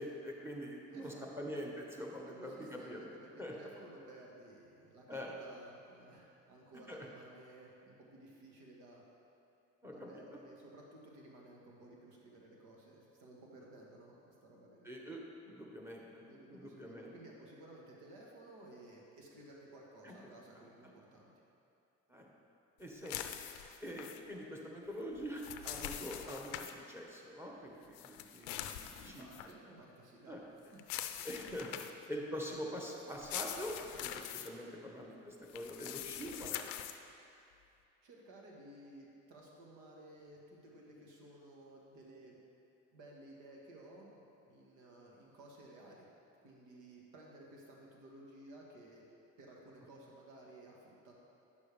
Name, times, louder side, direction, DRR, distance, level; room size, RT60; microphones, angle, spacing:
voice 1, 0.0-3.1 3.4-3.5 5.1-5.3 6.9-7.0 9.8-10.4 14.8-17.1 20.0-20.2 22.1-22.3 22.8-23.4 23.8-29.3 30.3-30.4 31.2-31.7 32.1-36.6, equal, 10° right, -1 dB, 1.4 m, -44 dB
voice 2, 0.9-1.5 2.2-9.0 9.9-14.9 16.2-21.3 28.9-31.1 38.0-42.4 42.9-46.1 46.4-49.0 49.4-51.1, right 1 dB, 80° right, -2 dB, 1.5 m, -56 dB
sound 1, 23.1-24.2 25.2-26.7 27.9-29.5 30.8-32.1 33.1-34.5 35.5-37.0, left 11 dB, 90° left, 0.5 m, -43 dB
9.3 x 6.6 x 3.4 m, 2.6 s
supercardioid pair, 75°, 30 cm